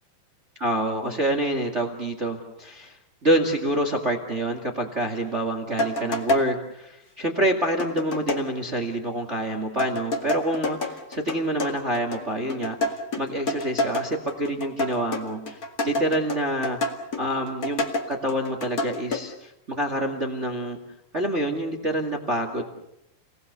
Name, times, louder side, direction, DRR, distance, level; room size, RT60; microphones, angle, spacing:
voice 1, 0.6-3.0 3.2-16.8 17.2-17.8 18.1-20.8 21.1-22.6, right 1 dB, 30° right, 4 dB, 1.2 m, -27 dB
sound 1, 5.8-6.5 7.8-8.5 9.8-19.2, left 2 dB, 35° left, 1.4 m, -28 dB
30.0 x 19.0 x 6.9 m, 0.82 s
omnidirectional pair, 4.9 m